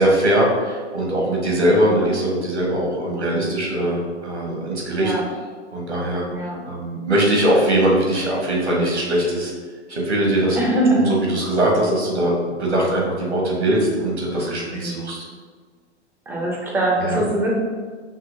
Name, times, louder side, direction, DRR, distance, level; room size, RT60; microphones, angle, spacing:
voice 1, 0.0-5.1 5.7-6.2 6.6-9.5 9.9-10.6 10.9-15.3 17.0-17.2, right 1 dB, 80° right, -2 dB, 1.4 m, -21 dB
voice 2, 4.9-5.3 6.3-6.6 10.5-11.1 14.7-15.1 16.3-17.5, right 1 dB, 5° right, -2 dB, 0.4 m, -23 dB
5.5 x 3.0 x 2.7 m, 1.5 s
figure-of-eight pair, 100°, 34 cm